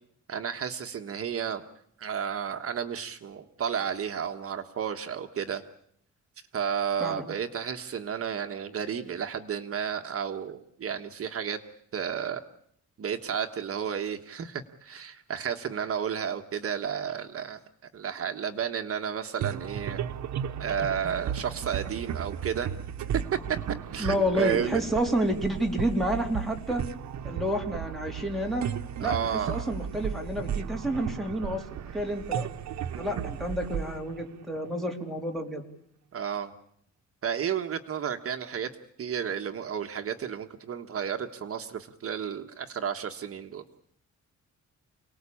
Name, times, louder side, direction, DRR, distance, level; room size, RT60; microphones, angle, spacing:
voice 1, 0.3-1.6 2.0-5.6 6.5-11.6 11.9-12.4 13.0-17.6 17.9-20.1 20.6-22.7 23.9-24.8 29.0-29.7 32.9-33.3 36.1-36.5 37.2-38.7 39.0-43.6, right 8 dB, 50° right, 6 dB, 1.5 m, -32 dB
sound 1, 19.4-35.0, right 9 dB, 70° right, 1.0 m, -35 dB
voice 2, 24.0-26.8 27.2-28.7 29.0-32.5 33.0-35.6, equal, ahead, 2 dB, 3.6 m, -30 dB
29.0 x 19.0 x 8.6 m, 0.72 s
wide cardioid pair, 160°, 29 cm